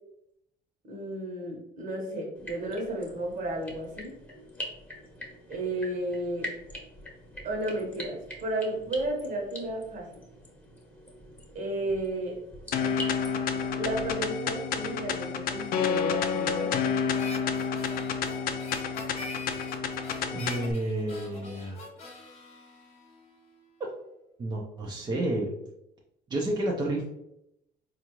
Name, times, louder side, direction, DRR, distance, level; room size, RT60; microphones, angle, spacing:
voice 1, 0.8-4.1 5.5-6.5 7.4-10.2 11.5-12.4 13.8-16.7, right 1 dB, 50° right, 0 dB, 1.2 m, -33 dB
sound 1, 2.3-14.1, left 1 dB, 10° left, 1.0 m, -44 dB
sound 2, 12.7-20.7, left 6 dB, 60° left, 0.4 m, -29 dB
Harmonica, 17.1-23.6, left 2 dB, 40° left, 0.9 m, -45 dB
voice 2, 20.3-21.9 24.4-25.5 26.3-27.1, right 1 dB, 25° right, -2 dB, 0.6 m, -30 dB
4.1 x 2.5 x 3.0 m, 0.82 s
cardioid pair, 110°, 17 cm